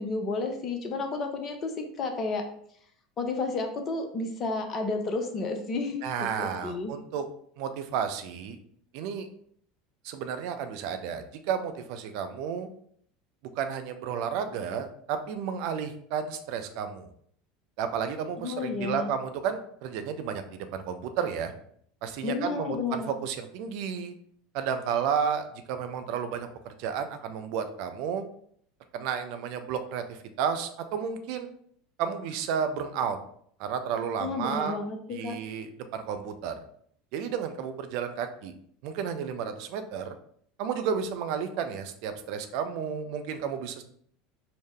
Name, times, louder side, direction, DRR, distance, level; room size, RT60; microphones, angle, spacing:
voice 1, 0.0-1.7 2.0-2.4 3.2-6.9 18.4-19.1 22.2-23.1 34.2-35.4, left 3 dB, 35° left, 5 dB, 0.6 m, -31 dB
voice 2, 6.0-7.2 7.6-8.6 8.9-9.3 10.0-12.7 13.6-17.1 17.8-21.5 22.0-24.1 24.5-28.2 28.9-31.5 32.0-33.2 33.6-34.8 35.1-36.6 37.1-38.5 38.8-40.1 40.6-43.8, right 7 dB, 55° right, 8 dB, 0.4 m, -32 dB
4.7 x 2.1 x 3.5 m, 0.64 s
figure-of-eight pair, 75°, 0 cm